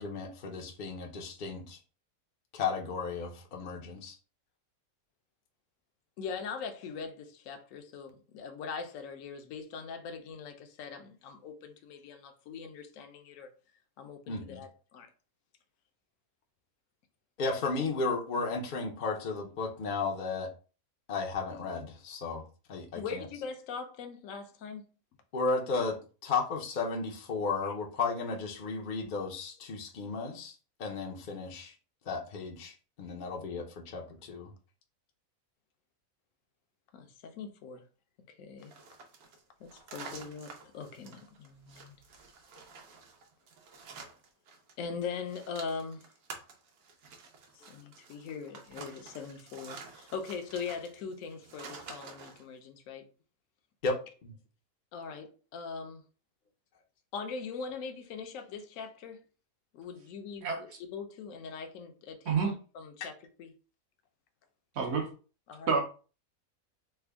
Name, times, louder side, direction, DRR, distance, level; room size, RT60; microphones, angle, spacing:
voice 1, 0.0-1.8 2.5-4.2 14.3-14.6 17.4-20.5 21.1-22.4 22.7-23.3 25.3-31.7 32.0-34.5 53.8-54.4 63.0-63.1, left 4 dB, 50° left, 0.6 m, -34 dB
voice 2, 6.2-13.5 14.0-15.1 23.0-24.8 36.9-37.8 38.4-38.7 39.6-42.0 44.8-46.0 47.5-53.0 54.9-56.0 57.1-59.2 59.7-60.5 60.8-63.1 63.4-63.5 65.5-65.7, left 5 dB, 70° left, 1.0 m, -41 dB
sound 1, 38.6-44.7 45.0-52.4, right 4 dB, 90° right, 1.2 m, -49 dB
voice 3, 64.8-65.1 65.7-65.8, right 5 dB, 55° right, 0.9 m, -28 dB
3.4 x 2.1 x 3.3 m
omnidirectional pair, 1.5 m